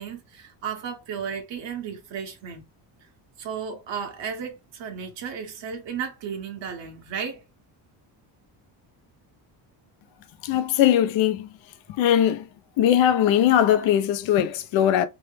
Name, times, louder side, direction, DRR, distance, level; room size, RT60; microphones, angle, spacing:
voice 1, 0.0-2.7 3.0-3.1 3.4-7.4, right 7 dB, 75° right, 1.3 m, -34 dB
voice 2, 10.4-11.5 11.9-12.5 12.8-15.0, left 10 dB, 80° left, 0.6 m, -20 dB
3.1 x 2.1 x 3.2 m
cardioid pair, 130°, 45 cm